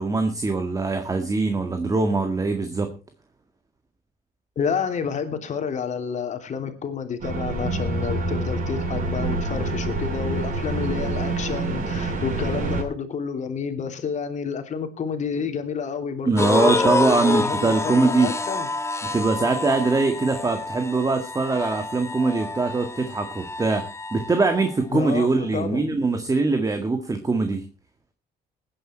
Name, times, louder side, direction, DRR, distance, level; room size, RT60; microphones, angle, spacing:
voice 1, 0.0-2.9 16.2-18.3 19.1-23.9 24.1-27.7, right 3 dB, 20° right, 7 dB, 1.8 m, -22 dB
voice 2, 4.5-18.7 24.9-26.0, left 6 dB, 45° left, 6 dB, 3.2 m, -29 dB
sound 1, 7.2-12.8, right 2 dB, 50° right, 7.6 m, -27 dB
sound 2, 16.4-24.8, left 3 dB, 15° left, 1.0 m, -28 dB
20.0 x 10.0 x 4.5 m, 0.33 s
cardioid pair, 110°, 17 cm